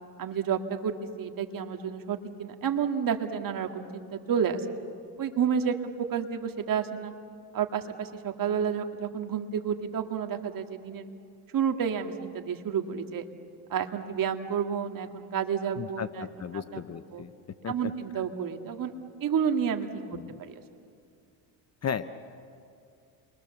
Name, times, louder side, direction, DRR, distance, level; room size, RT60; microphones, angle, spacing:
voice 1, 0.2-0.9 1.2-4.7 5.2-7.1 7.5-11.1 11.5-13.3 13.7-16.3 16.5-16.8 17.1-17.2 17.7-18.9 19.2-19.9 20.4-20.6, right 7 dB, 45° right, 5 dB, 2.1 m, -30 dB
voice 2, 15.8-17.3 17.6-17.9 20.1-20.3 21.8-22.1, left 7 dB, 35° left, 11 dB, 0.9 m, -35 dB
29.0 x 22.5 x 7.1 m, 2.4 s
supercardioid pair, 95°, 47 cm